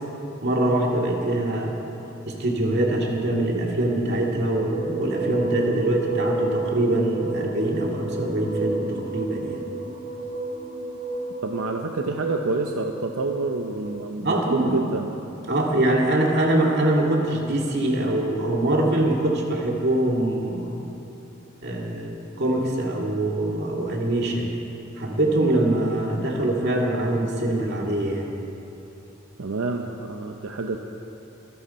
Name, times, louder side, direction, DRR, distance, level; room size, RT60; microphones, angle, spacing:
voice 1, 0.4-1.8 2.3-9.6 14.2-14.7 15.5-20.8 21.6-24.5 25.0-28.3, right 1 dB, 55° right, -1 dB, 2.3 m, -23 dB
sound 1, 4.6-13.9, right 2 dB, 40° right, 1.2 m, -32 dB
voice 2, 11.4-15.1 29.4-30.8, right 3 dB, 85° right, 3 dB, 0.8 m, -28 dB
25.0 x 11.5 x 4.3 m, 2.9 s
head